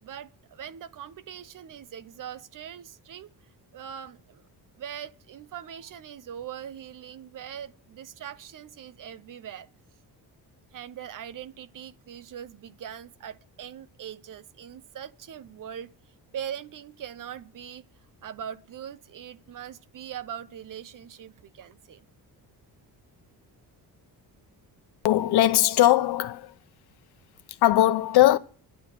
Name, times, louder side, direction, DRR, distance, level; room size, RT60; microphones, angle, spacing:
voice 1, 0.0-3.3 3.7-4.5 4.8-9.7 10.7-15.9 16.3-17.8 18.2-22.1, right 9 dB, 50° right, 0.8 m, -41 dB
voice 2, 25.0-26.5 27.6-28.4, left 14 dB, 70° left, 0.9 m, -20 dB
11.0 x 8.2 x 7.6 m
cardioid pair, 125°, 40 cm